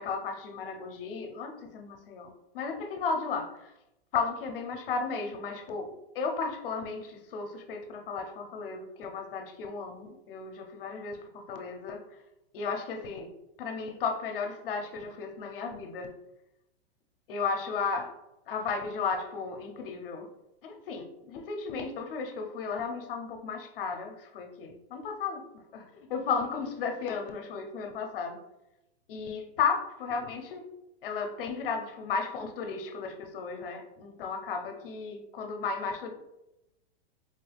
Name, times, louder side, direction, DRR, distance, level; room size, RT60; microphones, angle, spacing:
voice 1, 0.0-3.5 4.1-5.9 6.1-12.0 12.5-13.3 13.6-16.1 17.3-18.1 18.5-20.3 20.6-25.4 25.7-25.8 26.1-28.4 29.1-30.6 31.0-36.1, left 5 dB, 55° left, 4 dB, 0.7 m, -34 dB
4.2 x 2.3 x 3.4 m, 0.92 s
supercardioid pair, 165°, 32 cm